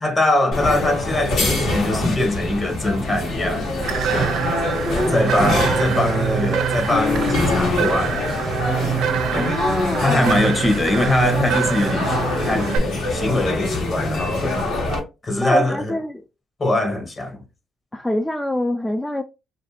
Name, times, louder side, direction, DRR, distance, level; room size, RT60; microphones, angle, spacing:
voice 1, 0.0-3.7 5.1-8.4 10.0-12.2 12.4-14.6 15.2-16.0 16.6-17.4, left 2 dB, 30° left, 0.9 m, -22 dB
sound 1, 0.5-15.0, left 2 dB, 80° left, 1.2 m, -24 dB
sound 2, 3.8-12.8, right 8 dB, 80° right, 0.4 m, -25 dB
voice 2, 4.9-5.5 9.3-10.4 15.4-16.2 17.9-19.2, left 1 dB, 10° left, 0.3 m, -25 dB
3.1 x 2.5 x 2.8 m
cardioid pair, 90°, 0 cm